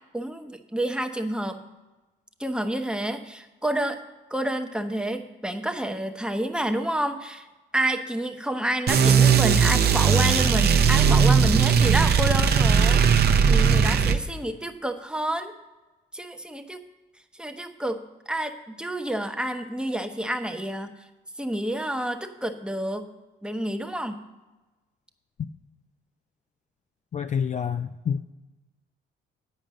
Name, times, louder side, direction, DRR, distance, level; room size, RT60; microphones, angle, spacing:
voice 1, 0.1-1.6 2.4-4.0 4.3-7.5 7.7-13.0 13.5-15.5 16.1-16.8 17.3-18.0 18.3-20.9 21.4-23.1 23.4-24.3, right 1 dB, 5° right, 6 dB, 0.8 m, -29 dB
sound 1, 8.9-14.2, right 6 dB, 55° right, 0.7 m, -18 dB
voice 2, 27.1-28.2, left 7 dB, 40° left, 10 dB, 0.4 m, -27 dB
9.4 x 5.2 x 7.4 m, 1.1 s
cardioid pair, 90°, 20 cm